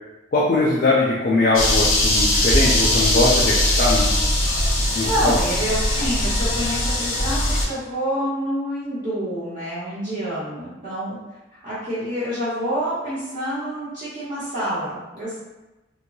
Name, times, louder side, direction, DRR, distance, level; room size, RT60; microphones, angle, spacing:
voice 1, 0.3-4.1 4.9-5.4, left 2 dB, 45° left, -5 dB, 0.4 m, -21 dB
sound 1, 1.5-7.7, left 1 dB, 90° left, 0.8 m, -20 dB
voice 2, 5.0-11.2 11.6-15.4, equal, 45° right, -13 dB, 1.0 m, -27 dB
3.1 x 2.2 x 2.7 m, 1.1 s
head